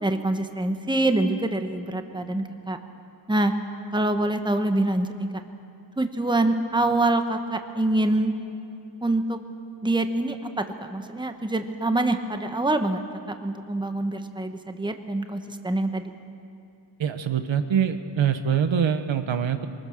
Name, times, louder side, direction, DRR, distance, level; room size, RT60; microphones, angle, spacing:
voice 1, 0.0-2.8 3.3-3.5 3.9-5.3 6.0-8.3 9.0-9.4 9.8-13.0 13.3-16.1, right 2 dB, 10° right, 7 dB, 1.1 m, -25 dB
voice 2, 17.0-19.7, right 8 dB, 80° right, 9 dB, 1.2 m, -24 dB
23.5 x 20.5 x 6.5 m, 2.6 s
wide cardioid pair, 125°, 45 cm